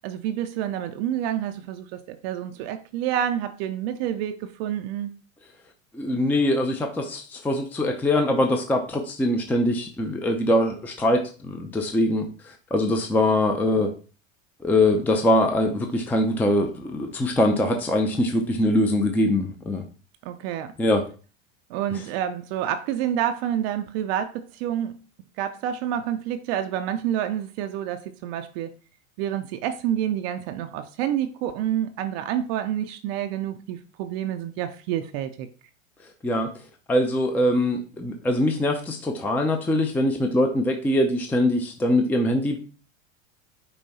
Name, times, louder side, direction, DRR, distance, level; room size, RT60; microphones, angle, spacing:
voice 1, 0.0-5.1 20.2-20.7 21.7-25.0 25.4-28.7 29.2-35.5, right 10 dB, 50° right, 0.5 m, -28 dB
voice 2, 5.9-13.9 14.6-19.8 20.8-21.0 21.9-22.0 36.2-36.5 36.9-42.6, left 1 dB, 5° left, 0.4 m, -23 dB
5.5 x 2.2 x 4.1 m
hypercardioid pair, 95°, 39 cm